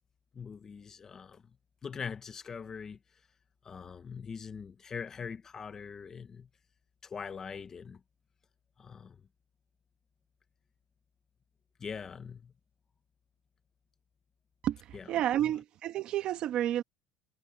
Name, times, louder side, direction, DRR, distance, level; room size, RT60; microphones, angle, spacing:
voice 1, 0.3-1.4 1.8-3.0 3.6-6.5 7.0-8.0 8.8-9.2 11.8-12.5 14.9-15.0 15.4-15.5, left 6 dB, 25° left, 0.9 m, -42 dB
voice 2, 14.6-16.8, right 12 dB, 50° right, 1.3 m, -31 dB
cardioid pair, 145°, 2 cm